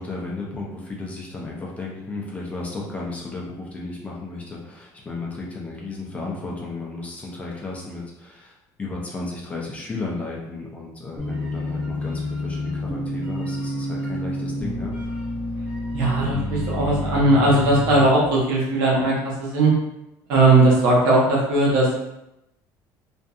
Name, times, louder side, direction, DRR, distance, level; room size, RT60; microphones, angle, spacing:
voice 1, 0.0-15.1 16.0-16.3, left 3 dB, 15° left, -3 dB, 0.5 m, -34 dB
sound 1, 11.2-18.0, left 1 dB, 5° right, 0.8 m, -29 dB
voice 2, 15.9-19.7 20.3-21.9, right 2 dB, 75° right, -5 dB, 1.0 m, -18 dB
2.6 x 2.5 x 2.3 m, 0.88 s
cardioid pair, 155°, 8 cm